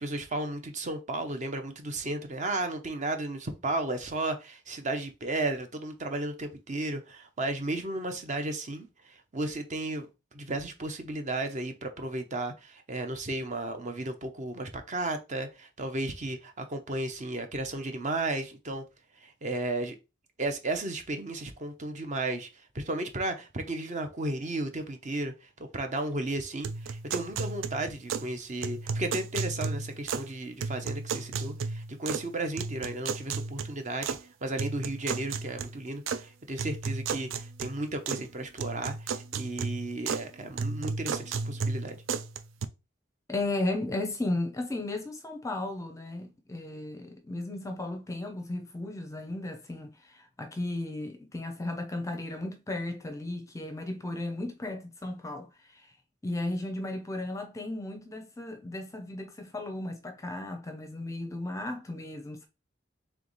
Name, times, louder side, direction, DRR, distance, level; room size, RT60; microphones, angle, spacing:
voice 1, 0.0-10.1 10.3-18.8 19.2-20.0 20.4-22.5 22.7-34.2 34.4-42.0, right 2 dB, 35° right, 0.7 m, -34 dB
sound 1, 26.6-28.3 28.6-30.3 30.6-32.3 32.6-34.2 34.6-36.2 36.6-38.3 38.6-40.3 40.6-42.7, right 5 dB, 80° right, 0.4 m, -34 dB
voice 2, 43.3-55.9 56.2-62.5, left 2 dB, 15° left, 0.6 m, -35 dB
3.5 x 3.3 x 3.9 m
head